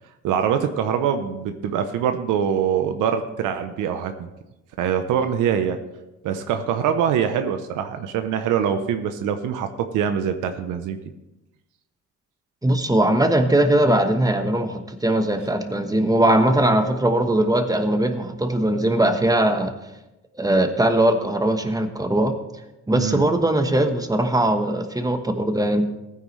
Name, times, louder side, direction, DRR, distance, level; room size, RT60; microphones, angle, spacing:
voice 1, 0.2-4.3 4.8-5.8 6.2-11.0 22.9-23.3, right 8 dB, 90° right, 8 dB, 0.8 m, -24 dB
voice 2, 12.6-19.7 20.3-22.3 22.9-25.9, right 1 dB, 10° right, 7 dB, 1.2 m, -20 dB
15.5 x 9.5 x 3.2 m, 0.97 s
cardioid pair, 90°, 30 cm